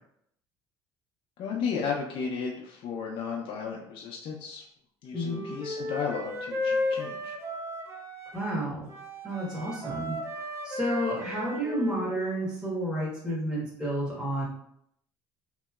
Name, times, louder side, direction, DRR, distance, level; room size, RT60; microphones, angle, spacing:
voice 1, 1.4-4.6 5.0-7.4, left 6 dB, 60° left, -1 dB, 0.5 m, -34 dB
voice 2, 5.1-5.4 8.3-8.9 9.2-10.2 10.6-14.4, right 1 dB, 5° right, -6 dB, 1.2 m, -31 dB
Wind instrument woodwind instrument, 5.1-8.6 8.9-12.4, left 2 dB, 25° right, 0.6 m, -34 dB
3.0 x 2.7 x 2.3 m, 0.72 s
supercardioid pair, 85°, 11 cm